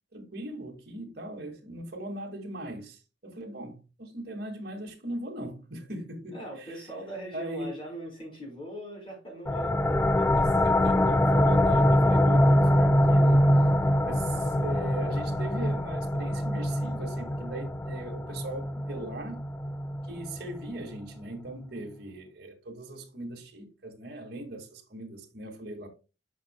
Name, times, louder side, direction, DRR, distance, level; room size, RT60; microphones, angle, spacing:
voice 1, 0.1-6.8 7.3-7.7 10.4-13.6 14.0-19.4 20.1-25.9, right 1 dB, 55° right, 2.1 m, -39 dB
voice 2, 6.3-10.5, right 1 dB, 30° left, 4.8 m, -41 dB
sound 1, 9.5-20.8, left 1 dB, 10° left, 0.3 m, -24 dB
9.9 x 6.3 x 2.3 m
head